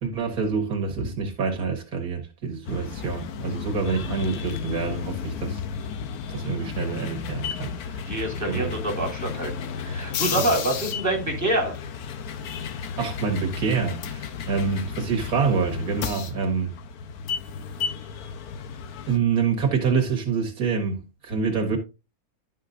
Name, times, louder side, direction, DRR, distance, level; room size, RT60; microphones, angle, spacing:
voice 1, 0.0-5.6 6.3-8.1 8.5-8.8 10.4-10.5 13.0-16.8 19.1-21.8, right 5 dB, 80° right, 2.1 m, -26 dB
sound 1, 2.6-19.2, left 6 dB, 90° left, 1.3 m, -33 dB
voice 2, 8.1-11.8, right 1 dB, 10° right, 2.8 m, -26 dB
11.5 x 5.7 x 2.5 m
omnidirectional pair, 1.5 m